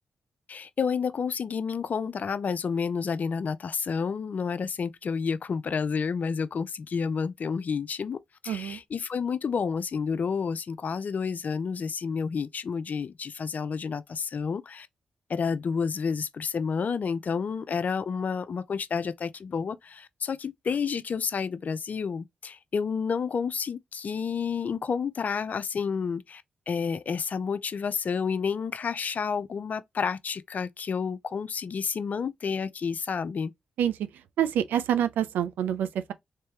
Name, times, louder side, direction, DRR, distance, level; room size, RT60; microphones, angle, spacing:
voice 1, 0.5-14.9 15.3-33.5, left 6 dB, 60° left, 0.5 m, -30 dB
voice 2, 8.5-8.8 33.8-34.1 34.4-36.1, right 9 dB, 85° right, 0.4 m, -27 dB
3.4 x 3.2 x 2.9 m
supercardioid pair, 45°, 3 cm